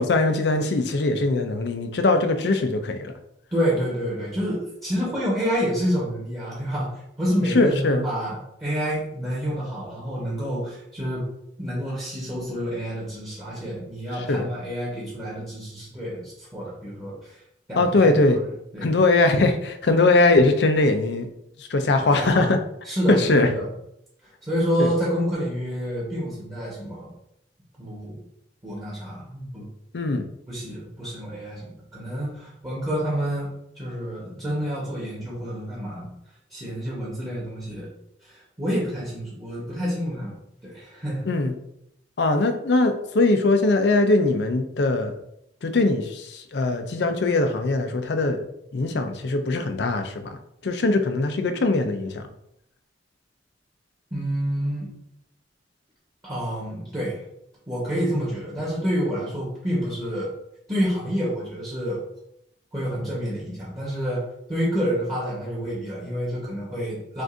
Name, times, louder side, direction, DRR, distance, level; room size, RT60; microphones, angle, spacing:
voice 1, 0.0-3.1 7.5-8.0 14.3-14.4 17.8-18.4 18.8-21.3 21.6-22.6 23.1-23.5 24.8-24.9 29.9-30.2 41.3-41.5 42.2-45.2 45.6-48.5 48.7-50.4 50.6-52.2, left 2 dB, 65° left, 7 dB, 0.5 m, -21 dB
voice 2, 3.5-11.3 11.6-17.4 17.7-18.1 18.7-19.0 22.0-22.5 22.8-23.7 24.4-27.1 27.8-28.2 28.6-29.6 30.5-36.1 36.5-37.9 38.2-40.4 40.6-41.3 54.1-54.9 56.2-57.2 57.7-60.3 60.7-62.0 62.7-64.2 64.5-67.2, equal, 20° right, -7 dB, 1.2 m, -28 dB
6.0 x 2.6 x 2.6 m, 0.76 s
head